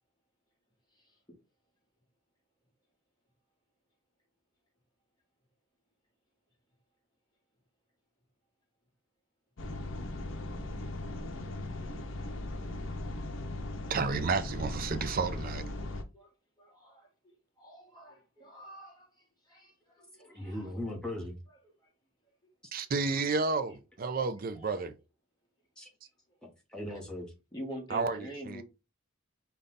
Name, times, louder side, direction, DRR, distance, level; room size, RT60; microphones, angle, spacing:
voice 1, 0.9-1.4 15.4-15.5 15.9-16.3 16.6-20.9 21.5-21.9 23.2-23.8 24.5-24.8 26.9-27.0 27.5-28.6, equal, 20° left, 1.3 m, -48 dB
sound 1, 9.6-16.0, left 2 dB, 65° left, 0.7 m, -38 dB
voice 2, 13.9-15.6 22.7-24.9 27.9-28.6, right 4 dB, 45° right, 0.4 m, -31 dB
voice 3, 20.2-21.4 25.8-25.9 26.4-27.3, left 1 dB, 5° left, 1.1 m, -39 dB
5.2 x 2.3 x 3.8 m
head